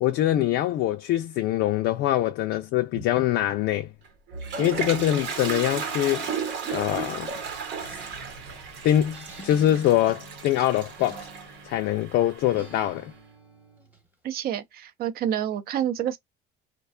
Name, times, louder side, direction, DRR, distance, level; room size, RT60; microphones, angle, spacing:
voice 1, 0.0-3.9 4.6-6.3 6.7-7.3 8.8-11.3 11.7-13.1, left 12 dB, 70° left, 0.4 m, -24 dB
Toilet flush, 4.0-12.9, right 6 dB, 75° right, 1.0 m, -34 dB
Acoustic guitar, 7.8-11.9 12.5-14.1, right 1 dB, 10° right, 0.9 m, -48 dB
voice 2, 14.2-16.2, right 10 dB, 55° right, 0.6 m, -28 dB
2.5 x 2.2 x 2.3 m
cardioid pair, 125°, 19 cm